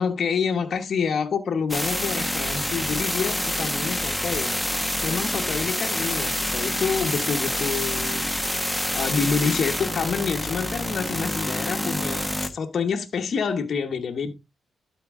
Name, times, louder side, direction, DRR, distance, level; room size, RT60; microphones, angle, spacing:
voice 1, 0.0-8.3 8.9-14.3, left 6 dB, 55° left, 1.1 m, -27 dB
sound 1, 1.7-12.5, equal, 5° left, 1.0 m, -27 dB
12.5 x 4.6 x 3.6 m
cardioid pair, 90°, 0 cm